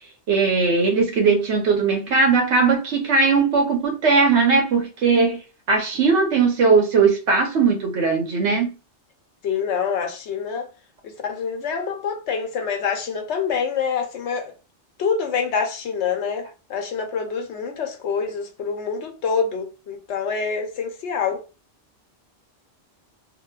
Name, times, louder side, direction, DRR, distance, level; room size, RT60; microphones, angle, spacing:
voice 1, 0.3-5.4 5.7-8.7, right 4 dB, 75° right, 1.1 m, -19 dB
voice 2, 9.4-10.7 11.0-14.5 15.0-21.4, left 6 dB, 80° left, 0.9 m, -26 dB
2.9 x 2.1 x 2.2 m
omnidirectional pair, 1.2 m